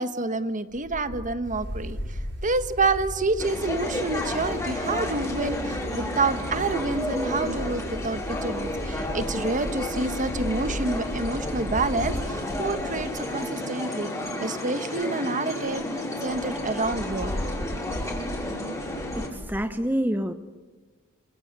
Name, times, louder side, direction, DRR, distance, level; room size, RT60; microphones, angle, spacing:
voice 1, 0.0-14.1 14.4-17.4, right 3 dB, 35° right, 11 dB, 1.5 m, -28 dB
Wind, 0.7-4.4 5.5-5.9 6.7-13.6 14.2-14.3 14.6-14.7 15.0-15.1 15.4-15.5 15.7-15.9 16.3-19.6, left 1 dB, 65° left, 1.8 m, -38 dB
sound 1, 1.4-13.1, equal, 55° right, 7.1 m, -38 dB
sound 2, 3.4-19.3, left 1 dB, 15° left, 5.7 m, -31 dB
voice 2, 19.2-20.3, equal, 10° right, 9 dB, 1.0 m, -27 dB
27.0 x 25.5 x 7.6 m, 1.4 s
head